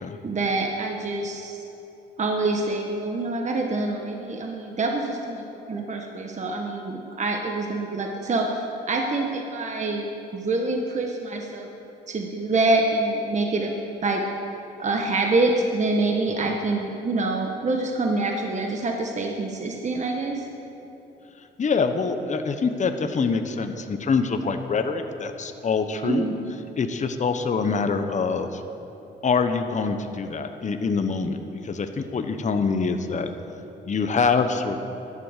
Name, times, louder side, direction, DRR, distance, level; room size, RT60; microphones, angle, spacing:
voice 1, 0.2-1.6 2.2-5.4 5.7-11.7 12.1-13.7 14.0-14.2 14.8-20.5 26.0-26.4, right 2 dB, 35° right, 2 dB, 1.4 m, -26 dB
voice 2, 21.6-26.3 26.8-28.6 29.2-33.3 33.8-34.8, left 5 dB, 35° left, 7 dB, 1.1 m, -25 dB
14.5 x 11.0 x 6.7 m, 2.9 s
cardioid pair, 90°, 20 cm